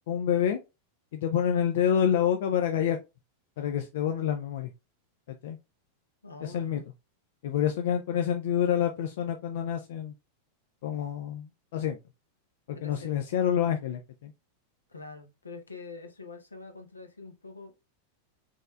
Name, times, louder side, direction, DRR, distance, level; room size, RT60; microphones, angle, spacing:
voice 1, 0.1-0.6 1.1-3.0 3.6-4.7 5.4-5.6 6.4-6.8 7.4-10.1 10.8-12.0 12.7-14.3, left 9 dB, 55° left, 0.5 m, -27 dB
voice 2, 6.2-6.8 12.7-13.1 14.9-17.8, left 4 dB, 80° left, 0.9 m, -45 dB
5.4 x 3.2 x 2.4 m
figure-of-eight pair, 90°, 0 cm